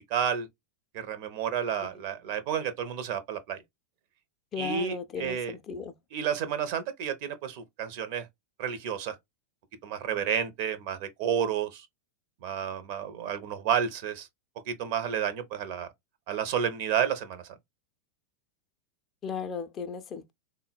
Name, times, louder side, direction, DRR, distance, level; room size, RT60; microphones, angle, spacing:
voice 1, 0.1-0.5 0.9-3.6 4.6-5.5 6.1-8.3 8.6-9.2 9.8-11.9 12.4-14.3 14.7-15.9 16.3-17.6, right 8 dB, 45° right, 0.5 m, -31 dB
voice 2, 4.5-5.9 19.2-20.3, left 6 dB, 30° left, 0.4 m, -36 dB
3.7 x 2.0 x 2.2 m
figure-of-eight pair, 90°, 0 cm